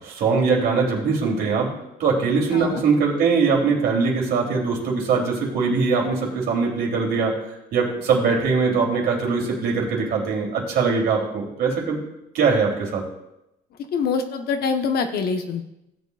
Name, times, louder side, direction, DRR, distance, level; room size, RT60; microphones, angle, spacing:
voice 1, 0.0-1.7 2.0-7.3 7.7-12.0 12.3-13.0, right 5 dB, 70° right, -2 dB, 3.2 m, -21 dB
voice 2, 2.5-2.8 13.9-15.7, left 5 dB, 65° left, 6 dB, 1.1 m, -24 dB
16.5 x 8.0 x 2.4 m, 0.88 s
cardioid pair, 110°, 17 cm